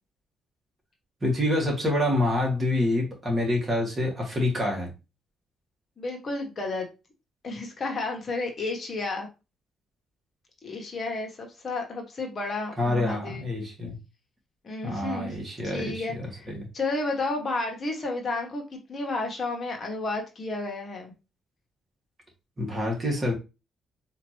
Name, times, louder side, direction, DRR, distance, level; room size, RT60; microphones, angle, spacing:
voice 1, 1.2-4.9 12.8-14.0 14.8-16.7 22.6-23.3, left 1 dB, 25° right, -1 dB, 1.9 m, -27 dB
voice 2, 6.0-6.9 7.4-9.3 10.6-13.4 14.6-21.1, left 3 dB, 45° left, 3 dB, 1.1 m, -32 dB
4.1 x 2.9 x 3.0 m, 0.28 s
cardioid pair, 90°, 0 cm